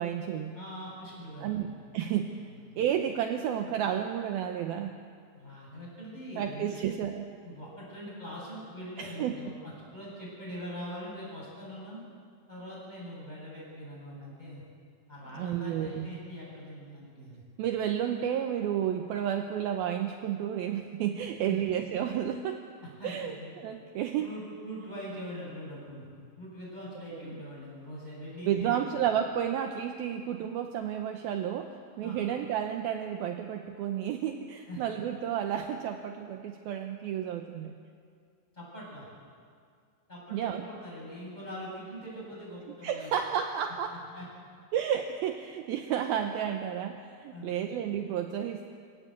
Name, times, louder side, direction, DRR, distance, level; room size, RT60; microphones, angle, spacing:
voice 1, 0.0-0.6 1.4-1.7 1.9-2.3 2.8-5.0 6.4-7.3 9.0-9.5 15.3-16.1 17.6-22.6 23.0-24.3 27.1-27.4 28.5-37.7 40.3-40.7 42.8-44.0 44.7-48.7, right 9 dB, 80° right, 5 dB, 2.2 m, -31 dB
voice 2, 0.5-1.7 2.1-2.2 5.4-6.8 7.4-12.0 12.5-14.6 15.1-17.4 21.5-21.6 23.0-23.5 24.2-28.7 32.0-32.2 34.7-34.8 38.5-39.1 40.1-43.1 44.1-44.3 47.3-47.6, equal, 10° left, -5 dB, 7.9 m, -42 dB
25.5 x 17.0 x 8.2 m, 2.2 s
omnidirectional pair, 5.4 m